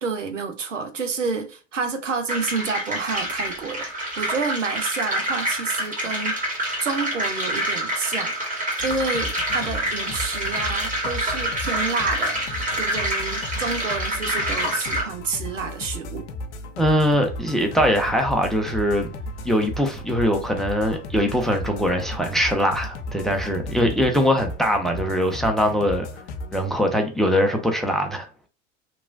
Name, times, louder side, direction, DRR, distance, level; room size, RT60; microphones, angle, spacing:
voice 1, 0.0-3.9 4.2-6.4 6.8-8.4 8.8-16.3, right 4 dB, 90° right, 0.6 m, -29 dB
sound 1, 2.3-15.0, right 1 dB, 20° right, 1.5 m, -27 dB
sound 2, 8.8-26.7, left 2 dB, 70° left, 0.6 m, -35 dB
voice 2, 16.8-19.1 19.4-26.1 26.5-28.5, equal, ahead, 0.5 m, -22 dB
sound 3, 17.0-22.9, right 10 dB, 55° right, 0.8 m, -43 dB
2.9 x 2.3 x 2.4 m
figure-of-eight pair, 75°, 36 cm